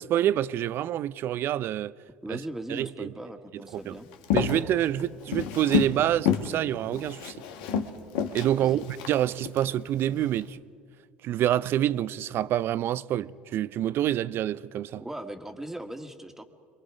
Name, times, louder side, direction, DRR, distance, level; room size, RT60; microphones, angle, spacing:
voice 1, 0.1-1.9 2.3-2.4 2.7-3.1 3.5-4.0 4.3-7.4 8.3-10.6 11.2-15.0, right 12 dB, 55° right, 0.5 m, -27 dB
voice 2, 2.2-4.1 8.6-8.8 15.0-16.4, right 1 dB, 10° right, 1.8 m, -38 dB
Walk footsteps, 4.1-6.0 6.2-6.5 6.9-9.6 10.1-10.4, left 8 dB, 80° left, 1.4 m, -29 dB
27.0 x 22.5 x 5.0 m
hypercardioid pair, 75°, 5 cm